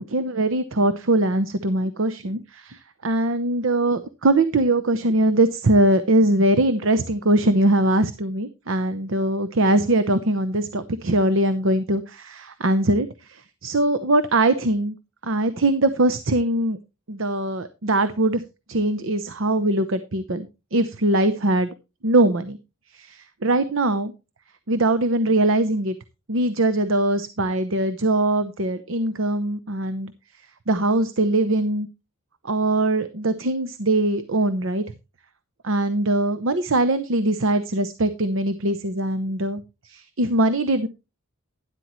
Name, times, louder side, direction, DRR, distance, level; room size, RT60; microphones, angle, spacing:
voice 1, 0.0-15.0 15.2-16.8 17.1-18.4 18.7-21.7 22.0-22.6 22.9-24.1 24.7-25.9 26.3-30.1 30.7-31.9 32.4-34.8 35.6-40.9, right 1 dB, 65° right, 12 dB, 0.8 m, -21 dB
12.0 x 11.0 x 3.1 m, 0.27 s
head